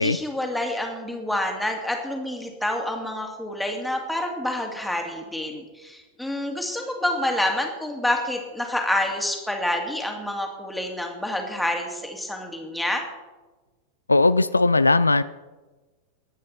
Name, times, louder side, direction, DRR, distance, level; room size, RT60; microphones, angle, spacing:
voice 1, 0.0-13.0, left 1 dB, 5° left, 2 dB, 2.6 m, -28 dB
voice 2, 14.1-15.2, left 3 dB, 80° left, 16 dB, 0.3 m, -18 dB
22.0 x 9.3 x 4.3 m, 1.2 s
figure-of-eight pair, 90°, 0 cm